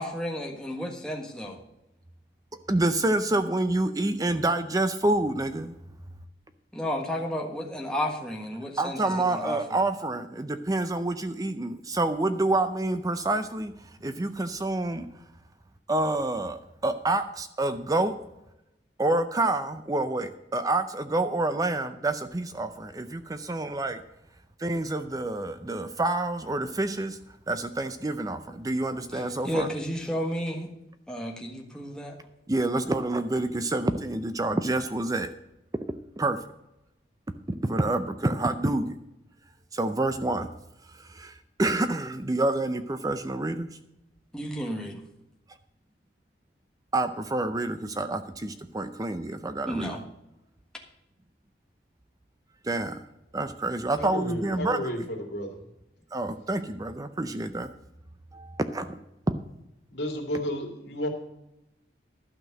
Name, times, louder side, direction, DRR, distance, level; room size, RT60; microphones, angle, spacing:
voice 1, 0.0-1.6 6.7-9.8 29.1-30.7 31.1-32.2 44.3-45.0 49.7-50.0, equal, 5° left, 0 dB, 1.4 m, -32 dB
voice 2, 2.7-5.7 8.8-13.7 14.0-15.1 15.9-18.1 19.0-24.0 24.6-27.2 27.5-29.7 32.5-35.3 36.2-36.4 37.6-39.0 39.7-40.5 41.0-43.7 46.9-50.0 52.6-53.0 53.3-55.0 56.1-57.7 58.3-58.9, right 2 dB, 20° right, 10 dB, 0.5 m, -28 dB
voice 3, 53.9-55.6 59.3-59.4 59.9-61.1, equal, 65° left, 2 dB, 2.4 m, -32 dB
12.0 x 6.1 x 7.7 m, 0.89 s
head